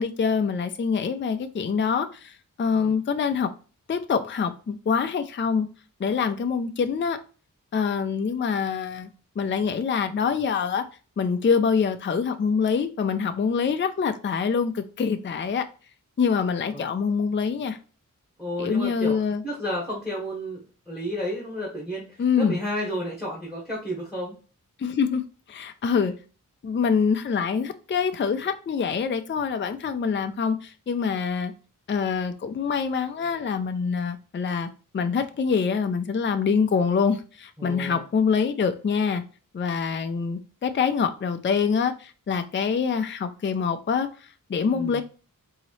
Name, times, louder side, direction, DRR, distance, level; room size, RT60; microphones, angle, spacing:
voice 1, 0.0-3.5 3.9-5.7 6.0-7.2 7.7-9.1 9.4-10.8 11.2-15.7 16.2-17.8 18.6-19.4 22.2-22.6 24.8-25.2 25.5-26.1 26.6-31.5 31.9-39.2 39.5-45.0, left 6 dB, 35° left, 0.4 m, -25 dB
voice 2, 18.4-19.2 19.4-24.3 37.6-38.0 44.7-45.0, equal, 5° right, 1.2 m, -32 dB
4.0 x 2.7 x 3.1 m
wide cardioid pair, 75°, 34 cm